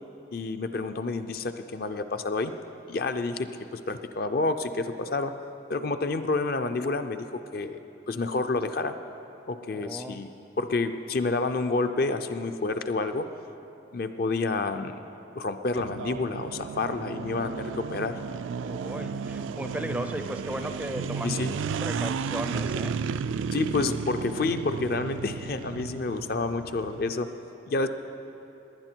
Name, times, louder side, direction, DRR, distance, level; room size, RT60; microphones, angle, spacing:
voice 1, 0.3-2.5 2.9-5.3 5.7-7.8 8.1-9.0 9.5-10.3 10.6-13.3 13.9-14.9 15.4-18.2 21.2-21.6 23.5-27.3 27.7-27.9, left 3 dB, 50° left, 8 dB, 0.5 m, -29 dB
voice 2, 9.7-10.2 18.6-23.0, right 1 dB, 5° right, 6 dB, 0.4 m, -36 dB
sound 1, 15.8-27.1, right 5 dB, 80° right, 0.3 m, -33 dB
19.0 x 10.0 x 4.5 m, 2.9 s
head